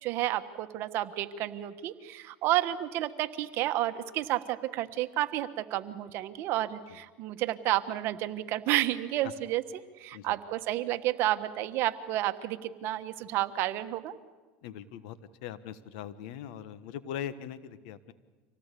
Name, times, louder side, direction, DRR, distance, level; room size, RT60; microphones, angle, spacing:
voice 1, 0.0-14.1, right 14 dB, 60° right, 10 dB, 1.3 m, -31 dB
voice 2, 14.6-18.1, left 10 dB, 80° left, 14 dB, 1.3 m, -41 dB
25.5 x 18.0 x 8.4 m, 1.3 s
supercardioid pair, 115°, 5 cm